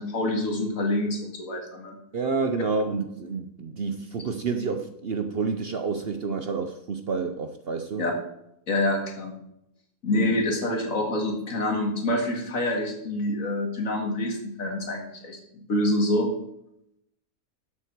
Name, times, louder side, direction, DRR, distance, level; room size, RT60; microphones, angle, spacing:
voice 1, 0.0-2.0 8.0-8.1 8.7-9.3 10.0-16.3, left 1 dB, 65° left, 3 dB, 2.2 m, -27 dB
voice 2, 2.1-8.1 10.1-10.3, right 4 dB, 50° right, 7 dB, 0.8 m, -29 dB
11.5 x 7.1 x 4.6 m, 0.78 s
omnidirectional pair, 1.5 m